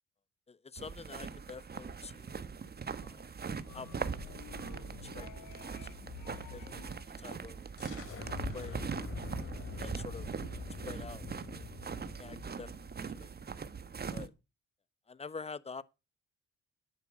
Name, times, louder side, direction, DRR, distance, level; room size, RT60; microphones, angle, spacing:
voice 1, 0.5-2.4 3.0-3.3 3.7-4.5 5.0-5.5 5.8-6.0 6.5-7.6 8.5-8.8 9.5-10.3 10.9-11.3 12.2-12.7 13.2-13.3 14.1-14.3 15.1-15.8, left 4 dB, 20° left, 0.9 m, -47 dB
sound 1, 0.8-14.3, right 5 dB, 30° right, 1.2 m, -41 dB
sound 2, 3.7-7.0, left 13 dB, 75° left, 0.8 m, -50 dB
sound 3, 7.8-13.3, left 4 dB, 50° left, 2.9 m, -44 dB
11.0 x 8.6 x 6.1 m
cardioid pair, 90°, 30 cm